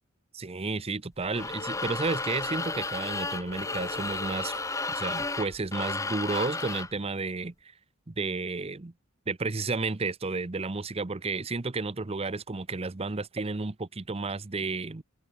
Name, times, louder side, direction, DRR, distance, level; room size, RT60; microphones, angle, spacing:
voice 1, 0.3-4.6 4.9-7.5 8.1-8.9 9.3-15.0, right 3 dB, 30° right, 0.7 m, -32 dB
sound 1, 1.2-7.0, left 3 dB, 15° left, 0.9 m, -33 dB
sound 2, 1.3-5.7, left 2 dB, 30° left, 3.3 m, -46 dB
open air
head